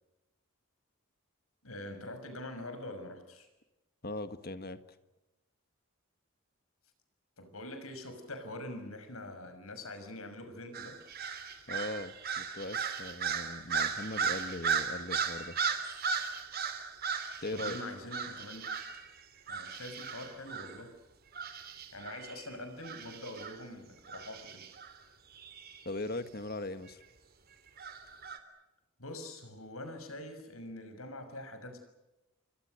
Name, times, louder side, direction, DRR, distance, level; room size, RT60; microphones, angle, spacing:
voice 1, 1.6-3.5 7.4-11.0 17.5-18.6 19.5-20.9 21.9-24.7 29.0-31.8, left 1 dB, 75° left, 8 dB, 6.3 m, -44 dB
voice 2, 4.0-4.8 11.7-15.6 17.4-17.8 25.9-27.0, left 2 dB, 45° left, 10 dB, 1.7 m, -39 dB
sound 1, 10.7-19.1 19.5-20.8 21.3-23.6 24.1-24.9 25.4-25.8 27.8-28.4, right 6 dB, 45° right, 3.1 m, -36 dB
29.5 x 25.0 x 6.6 m, 0.99 s
head